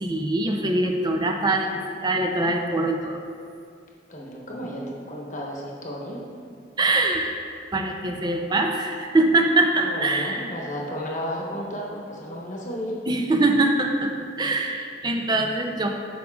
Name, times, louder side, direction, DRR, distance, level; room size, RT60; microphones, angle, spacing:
voice 1, 0.0-1.7 2.0-3.2 6.8-7.3 7.7-10.5 13.1-14.1 14.4-15.9, right 2 dB, 25° right, 3 dB, 0.4 m, -23 dB
voice 2, 4.1-6.2 9.8-13.0, equal, 40° left, -2 dB, 1.0 m, -33 dB
11.5 x 5.1 x 2.4 m, 2.3 s
head